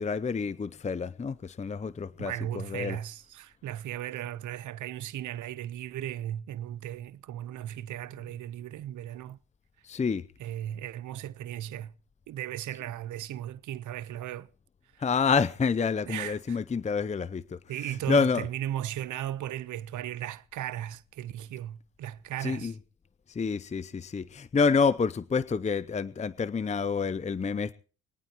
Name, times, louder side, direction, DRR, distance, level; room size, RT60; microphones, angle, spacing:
voice 1, 0.0-3.0 9.8-10.2 15.0-18.5 22.4-22.7 23.3-27.7, left 5 dB, 25° left, 0.7 m, -28 dB
voice 2, 2.2-9.4 10.4-11.9 12.3-14.5 16.1-16.6 17.7-22.7, right 12 dB, 75° right, 1.0 m, -36 dB
22.0 x 18.5 x 3.0 m
cardioid pair, 90°, 30 cm